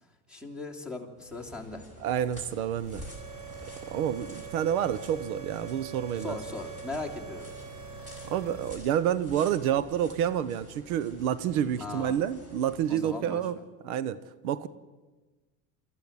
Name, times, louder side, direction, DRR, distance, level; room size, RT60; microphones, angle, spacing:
voice 1, 0.3-1.9 6.1-7.5 11.8-12.2 12.9-13.4, left 3 dB, ahead, 2.9 m, -38 dB
sound 1, 1.2-13.1, left 2 dB, 20° right, 6.5 m, -50 dB
voice 2, 2.0-3.1 3.9-6.4 8.2-13.6 13.8-14.2 14.4-14.7, right 10 dB, 90° right, 1.1 m, -29 dB
sound 2, 2.8-8.8, right 6 dB, 55° right, 5.8 m, -43 dB
25.0 x 14.5 x 8.7 m
supercardioid pair, 130°, 41 cm